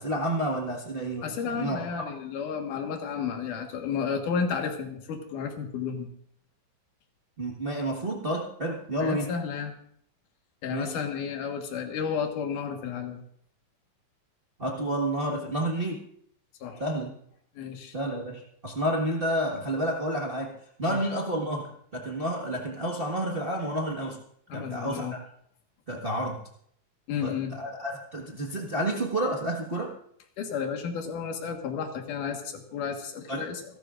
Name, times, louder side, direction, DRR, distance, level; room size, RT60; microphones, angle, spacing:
voice 1, 0.0-2.1 7.4-9.3 10.7-11.0 14.6-16.0 16.8-17.1 17.9-24.2 24.5-25.2 25.9-26.4 27.2-30.0 33.3-33.5, right 1 dB, 45° right, -1 dB, 0.7 m, -30 dB
voice 2, 1.2-6.1 9.0-9.7 10.6-13.2 16.6-16.8 17.5-17.9 20.9-21.0 24.5-25.2 27.1-27.5 30.4-33.6, left 6 dB, 75° left, 3 dB, 3.1 m, -32 dB
28.0 x 12.0 x 2.5 m, 0.66 s
omnidirectional pair, 3.7 m